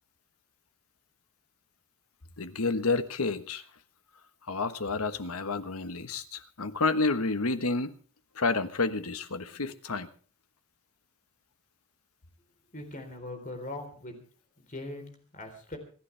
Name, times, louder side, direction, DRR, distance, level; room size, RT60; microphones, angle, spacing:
voice 1, 2.4-3.6 4.5-7.9 8.3-10.1, left 3 dB, 90° left, 1.3 m, -30 dB
voice 2, 12.7-14.2 14.6-15.8, left 2 dB, 35° left, 3.8 m, -41 dB
27.0 x 11.5 x 3.4 m
head